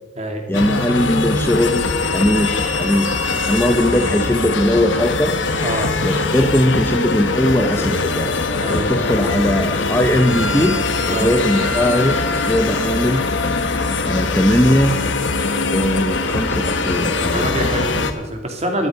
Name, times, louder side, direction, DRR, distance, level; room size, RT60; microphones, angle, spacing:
sound 1, 0.5-18.1, left 3 dB, 65° left, 1.3 m, -21 dB
voice 1, 0.5-3.2 3.5-5.3 6.0-8.3 8.7-10.8 11.1-13.7 14.0-15.0 15.7-17.4, left 1 dB, 10° left, 5 dB, 0.7 m, -19 dB
voice 2, 8.5-8.9 11.1-11.3 17.0-18.9, right 1 dB, 30° right, 3 dB, 2.3 m, -25 dB
13.0 x 12.5 x 5.2 m, 1.1 s
head